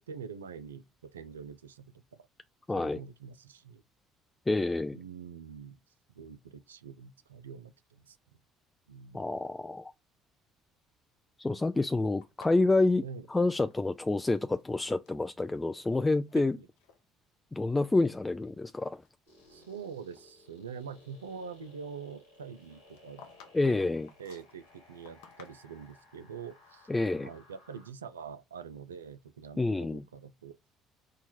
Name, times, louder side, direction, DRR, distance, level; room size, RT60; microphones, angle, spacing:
voice 1, 0.0-2.3 2.7-3.8 4.9-5.8 6.1-8.2 8.9-9.2 13.0-13.3 16.3-16.7 19.5-23.3 23.6-23.9 24.2-26.9 27.2-30.6, right 6 dB, 85° right, 0.3 m, -45 dB
voice 2, 2.7-3.0 4.5-5.0 9.1-9.9 11.4-13.0 13.3-16.6 17.5-19.0 23.5-24.1 26.9-27.3 29.6-30.0, left 2 dB, 15° left, 0.3 m, -28 dB
sound 1, 12.2-14.2 14.5-15.2 15.9-16.4 16.8-17.0 17.6-17.7 18.3-19.8 20.1-20.3 22.6-26.0, left 7 dB, 75° left, 0.7 m, -57 dB
sound 2, 19.3-27.9, left 2 dB, 90° left, 2.0 m, -59 dB
4.5 x 2.3 x 4.2 m
figure-of-eight pair, 55°, 0 cm